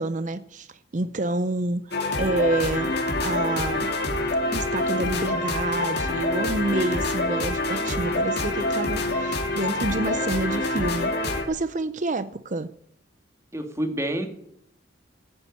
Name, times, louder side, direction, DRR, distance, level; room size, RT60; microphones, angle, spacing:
voice 1, 0.0-3.9 4.5-12.7, right 2 dB, 40° right, 0.6 m, -28 dB
sound 1, 1.9-11.4, left 2 dB, 55° left, 3.0 m, -26 dB
voice 2, 13.5-14.3, right 1 dB, 15° right, 2.3 m, -28 dB
15.5 x 9.6 x 8.5 m
head